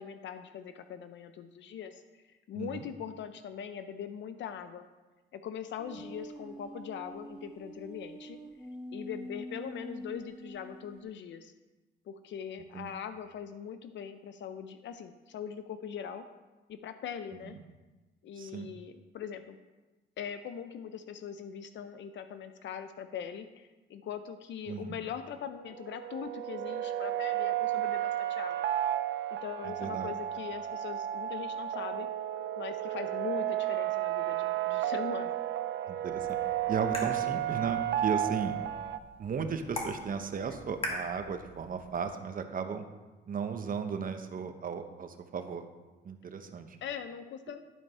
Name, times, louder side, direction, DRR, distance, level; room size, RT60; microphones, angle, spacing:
voice 1, 0.0-2.2 2.5-4.9 5.3-8.4 8.9-11.5 12.1-16.2 16.7-17.6 18.2-19.6 20.2-28.6 29.3-32.1 32.6-35.4 37.1-37.3 46.8-47.6, left 8 dB, 65° left, 9 dB, 0.6 m, -41 dB
voice 2, 2.5-2.8 12.7-12.9 17.5-17.6 18.4-18.7 24.7-25.0 29.6-30.1 35.9-36.4 36.7-38.5 39.2-42.8 43.3-45.6 46.0-46.8, right 6 dB, 45° right, 7 dB, 1.0 m, -35 dB
sound 1, 5.8-11.0, equal, 5° right, 1.4 m, -45 dB
sound 2, 25.7-39.0, right 12 dB, 70° right, 0.5 m, -32 dB
sound 3, 36.0-42.1, left 1 dB, 30° left, 2.4 m, -43 dB
11.0 x 4.7 x 5.5 m, 1.2 s
cardioid pair, 90°, 20 cm